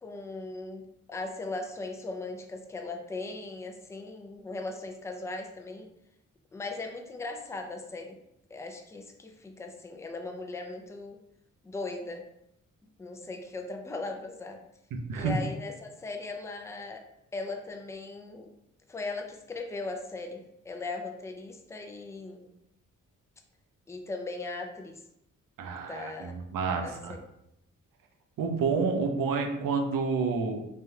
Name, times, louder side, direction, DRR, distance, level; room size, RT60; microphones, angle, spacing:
voice 1, 0.0-5.9 6.5-8.2 8.5-11.2 11.6-12.2 13.0-14.6 15.1-17.0 17.3-18.5 18.9-22.5 23.9-25.0 25.9-26.3 26.8-27.2, left 3 dB, 10° left, 3 dB, 0.3 m, -38 dB
voice 2, 14.9-15.4 25.6-27.2 28.4-30.6, right 5 dB, 85° right, 3 dB, 0.5 m, -29 dB
3.3 x 2.3 x 2.7 m, 0.82 s
cardioid pair, 80°, 32 cm